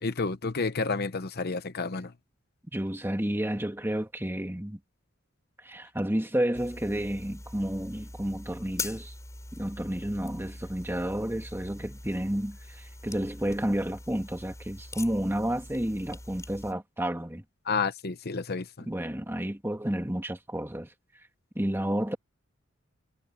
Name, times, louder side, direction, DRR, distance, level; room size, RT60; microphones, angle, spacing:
voice 1, 0.0-2.1 17.7-18.9, left 4 dB, 50° left, 0.9 m, -30 dB
voice 2, 2.7-4.8 5.6-9.1 9.5-17.4 18.9-20.9 21.6-22.2, right 1 dB, 10° right, 1.8 m, -31 dB
sound 1, 6.5-16.7, left 2 dB, 15° left, 6.8 m, -43 dB
head